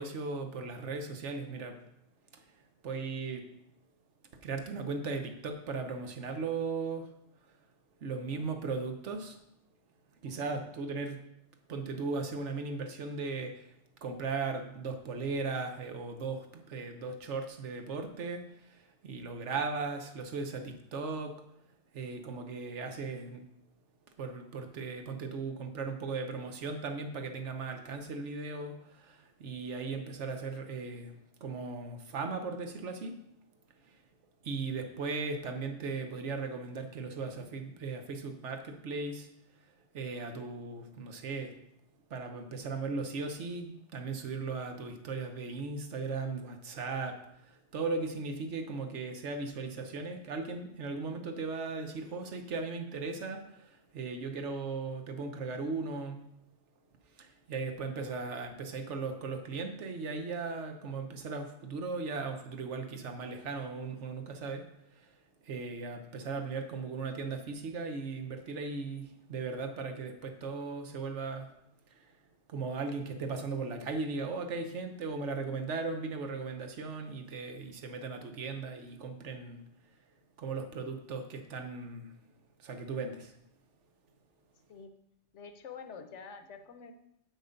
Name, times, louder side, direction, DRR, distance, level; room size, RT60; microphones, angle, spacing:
voice 1, 0.0-1.8 2.8-3.4 4.4-7.1 8.0-9.4 10.2-11.2 11.7-13.6 14.0-18.4 19.0-21.4 21.9-23.4 24.2-31.1 31.4-33.1 34.4-39.3 39.9-41.5 42.1-47.2 47.4-56.2 57.2-64.6 65.4-71.5 72.5-79.6 80.4-82.1 82.6-83.3, right 4 dB, 85° right, 6 dB, 1.3 m, -37 dB
voice 2, 8.1-8.5 10.2-10.6 84.7-84.9 85.3-86.9, left 5 dB, 85° left, 8 dB, 1.1 m, -48 dB
8.2 x 6.1 x 5.2 m, 0.78 s
omnidirectional pair, 1.2 m